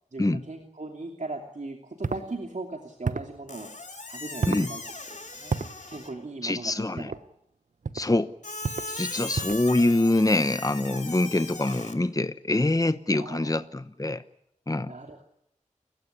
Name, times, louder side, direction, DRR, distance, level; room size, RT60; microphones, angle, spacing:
voice 1, 0.1-3.7 4.1-4.8 5.4-5.5 5.9-7.2 13.1-13.6 14.8-15.2, right 2 dB, 70° right, 2 dB, 2.9 m, -38 dB
sound 1, 2.0-2.3 3.0-3.4 4.4-4.7 5.5-5.7 7.0-7.2 7.8-8.1 8.6-8.9 9.3-9.7, right 4 dB, 90° right, 1.0 m, -30 dB
Squeak, 3.5-6.2 8.4-11.9, left 2 dB, 75° left, 2.8 m, -38 dB
voice 2, 6.4-7.1 7.9-8.3 8.9-14.2 14.7-14.9, left 2 dB, 25° left, 12 dB, 0.9 m, -25 dB
29.5 x 16.0 x 9.9 m, 0.76 s
wide cardioid pair, 45°, 13 cm